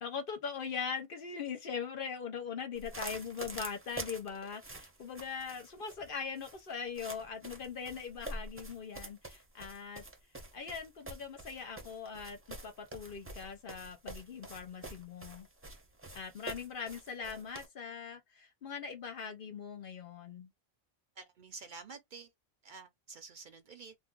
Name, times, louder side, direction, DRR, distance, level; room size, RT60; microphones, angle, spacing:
voice 1, 0.0-10.0 10.5-15.5 16.1-20.5, left 6 dB, 55° left, 0.9 m, -41 dB
sound 1, 2.7-17.7, right 2 dB, 15° right, 0.6 m, -47 dB
voice 2, 21.2-22.3 22.6-23.9, right 4 dB, 55° right, 0.6 m, -49 dB
2.7 x 2.3 x 3.6 m
omnidirectional pair, 1.1 m